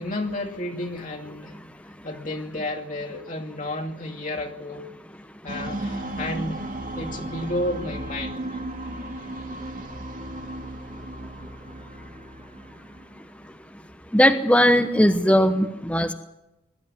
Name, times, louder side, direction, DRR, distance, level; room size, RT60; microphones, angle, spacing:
voice 1, 0.0-1.6 2.0-4.9 5.4-6.7 6.9-8.4, left 1 dB, 40° left, 1 dB, 2.4 m, -31 dB
sound 1, 5.5-13.6, right 1 dB, 45° right, 1.9 m, -35 dB
voice 2, 14.1-16.1, equal, 5° left, 7 dB, 1.0 m, -18 dB
21.5 x 13.5 x 9.6 m, 0.91 s
head